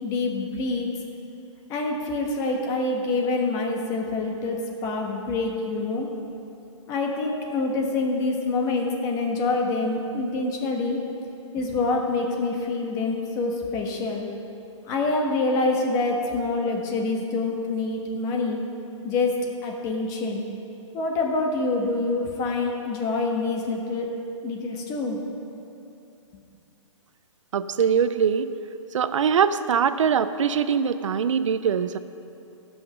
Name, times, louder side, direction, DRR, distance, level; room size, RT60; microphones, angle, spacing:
voice 1, 0.0-0.9 1.7-6.1 6.9-11.0 11.5-14.3 14.9-18.6 19.0-20.4 20.9-24.2 24.4-25.2, left 3 dB, 20° left, 1 dB, 1.3 m, -26 dB
voice 2, 27.5-28.5 28.9-32.0, right 7 dB, 70° right, 12 dB, 0.6 m, -22 dB
15.5 x 5.6 x 5.9 m, 2.8 s
hypercardioid pair, 150°, 17 cm